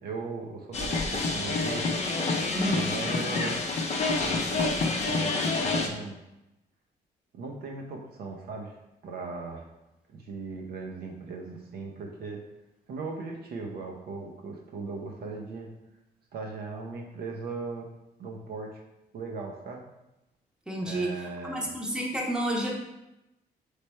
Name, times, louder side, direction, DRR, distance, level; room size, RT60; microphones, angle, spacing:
voice 1, 0.0-1.9 2.7-3.6 4.2-6.2 7.3-8.8 9.0-9.7 10.1-12.4 12.9-15.7 16.3-17.9 18.2-18.8 19.1-19.8 20.8-21.7, right 3 dB, 65° right, 1 dB, 0.7 m, -38 dB
sound 1, 0.7-5.9, left 3 dB, 40° left, 0.6 m, -28 dB
voice 2, 20.7-22.7, right 1 dB, 5° right, -2 dB, 0.9 m, -30 dB
3.3 x 3.2 x 4.2 m, 0.94 s
cardioid pair, 105°, 17 cm